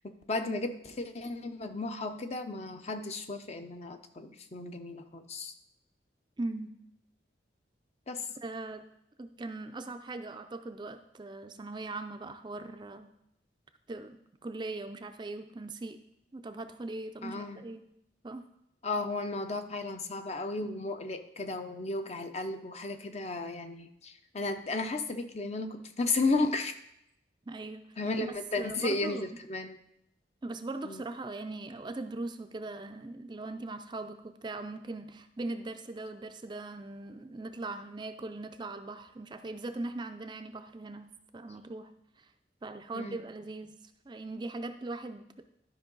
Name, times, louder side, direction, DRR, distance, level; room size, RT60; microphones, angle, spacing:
voice 1, 0.3-5.5 8.1-8.3 17.2-17.6 18.8-26.7 28.0-29.8 30.8-31.0 42.9-43.2, left 3 dB, 35° left, 7 dB, 0.6 m, -34 dB
voice 2, 6.4-6.7 8.4-8.8 9.2-13.1 13.9-14.2 14.4-16.0 16.3-17.8 18.2-18.5 27.5-27.9 28.6-29.3 30.4-41.9 42.2-42.3 42.6-43.7 44.1-45.4, right 2 dB, 25° right, 7 dB, 0.4 m, -40 dB
12.0 x 5.3 x 3.9 m, 0.79 s
head